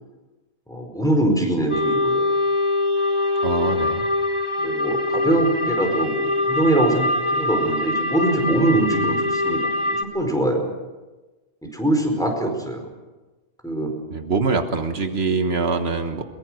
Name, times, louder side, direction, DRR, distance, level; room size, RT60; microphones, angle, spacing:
voice 1, 0.7-2.3 3.7-3.8 4.6-10.6 11.6-12.9 13.6-13.9, right 1 dB, 5° left, 2 dB, 4.7 m, -23 dB
sound 1, 1.7-10.0, left 2 dB, 25° right, 1.4 m, -23 dB
voice 2, 3.4-4.0 14.1-16.2, right 4 dB, 80° right, 7 dB, 1.6 m, -23 dB
22.5 x 21.0 x 6.4 m, 1.2 s
omnidirectional pair, 1.1 m